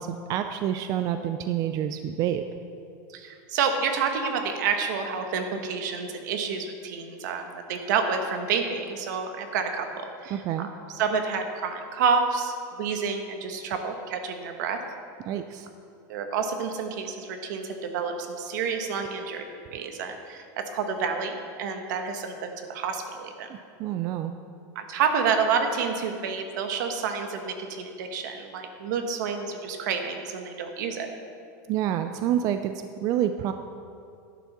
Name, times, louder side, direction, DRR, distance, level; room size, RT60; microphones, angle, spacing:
voice 1, 0.0-2.4 10.3-10.7 15.3-15.7 23.8-24.3 31.7-32.7 33.0-33.5, right 10 dB, 35° right, 8 dB, 0.4 m, -27 dB
voice 2, 3.1-14.8 16.1-19.4 19.7-23.5 24.7-31.1, right 5 dB, 70° right, 5 dB, 1.3 m, -29 dB
11.0 x 7.1 x 5.9 m, 2.5 s
supercardioid pair, 150°, 10 cm